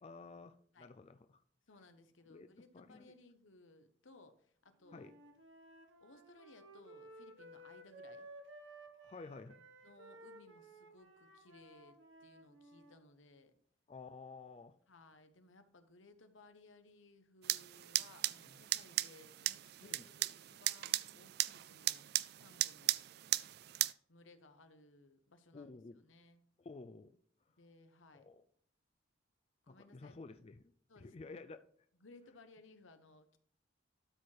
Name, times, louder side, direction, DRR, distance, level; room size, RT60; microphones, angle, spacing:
voice 1, 0.0-1.4 2.3-2.5 2.7-3.1 4.9-5.1 9.0-9.6 13.9-14.7 19.8-20.1 25.5-26.1 26.6-27.1 28.1-28.4 29.7-31.6, left 3 dB, 30° left, 10 dB, 0.4 m, -52 dB
voice 2, 1.7-5.1 6.0-8.3 9.8-13.5 14.9-22.0 22.3-23.0 24.1-25.7 26.1-26.4 27.6-28.3 29.6-30.2 30.9-31.1 32.0-33.4, left 2 dB, 85° left, 9 dB, 1.1 m, -62 dB
Wind instrument woodwind instrument, 4.8-13.0, right 1 dB, 80° right, 1.4 m, -57 dB
sound 1, 17.4-23.9, right 15 dB, 55° right, 0.3 m, -37 dB
12.5 x 4.8 x 4.5 m, 0.62 s
head